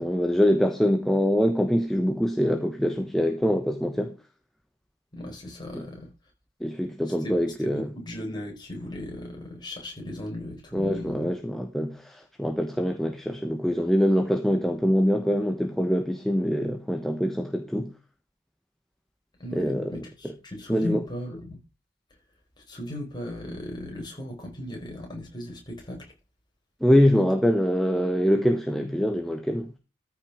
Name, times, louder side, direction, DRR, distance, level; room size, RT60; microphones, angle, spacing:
voice 1, 0.0-4.1 5.7-5.9 6.6-7.9 10.7-17.9 19.5-20.0 20.2-20.3 20.7-21.0 26.8-29.8, equal, ahead, 1.0 m, -24 dB
voice 2, 5.1-6.1 7.2-11.3 19.4-21.6 22.7-26.1, left 1 dB, 25° left, 5.1 m, -37 dB
13.5 x 6.0 x 5.0 m
head